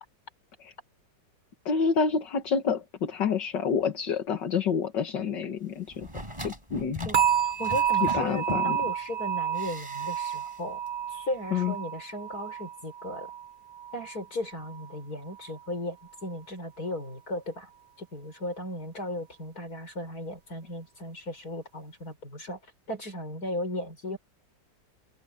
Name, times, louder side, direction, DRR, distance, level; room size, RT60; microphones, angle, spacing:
voice 1, 1.7-6.1 6.4-7.1 8.0-8.8 11.5-11.7, left 6 dB, 75° left, 2.2 m, -28 dB
sound 1, 5.9-8.9 9.5-10.6 10.9-11.0, equal, 15° right, 8.2 m, -40 dB
voice 2, 7.0-10.8 11.1-13.3 13.9-17.7 18.0-22.6 22.9-24.2, left 1 dB, 55° left, 6.7 m, -36 dB
sound 2, 7.1-14.2 14.5-14.9 15.4-15.5, right 9 dB, 30° right, 1.3 m, -30 dB
open air
omnidirectional pair, 1.9 m